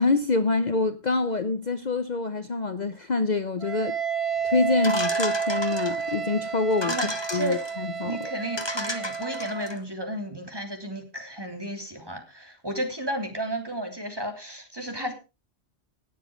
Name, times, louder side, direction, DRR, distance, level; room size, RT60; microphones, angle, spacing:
voice 1, 0.0-4.0 4.4-6.9 7.3-8.2, left 3 dB, 45° left, 0.9 m, -26 dB
Wind instrument woodwind instrument, 3.6-9.8, right 6 dB, 70° right, 1.3 m, -30 dB
sound 1, 4.8-6.1 6.7-7.7 8.2-8.3 8.6-9.8, left 1 dB, 25° left, 1.6 m, -33 dB
voice 2, 6.9-7.6 8.0-15.1, right 1 dB, 20° right, 3.2 m, -33 dB
18.0 x 7.3 x 5.0 m
omnidirectional pair, 1.1 m